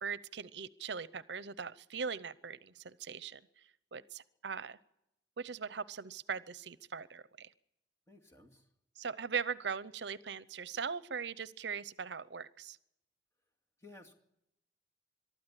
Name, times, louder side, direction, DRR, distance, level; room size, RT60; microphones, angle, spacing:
voice 1, 0.0-4.8 5.4-7.5 9.0-12.8, right 6 dB, 70° right, 17 dB, 0.7 m, -40 dB
voice 2, 8.1-8.7 13.8-14.1, left 2 dB, 15° left, 1 dB, 2.3 m, -56 dB
23.0 x 13.0 x 9.9 m, 0.84 s
head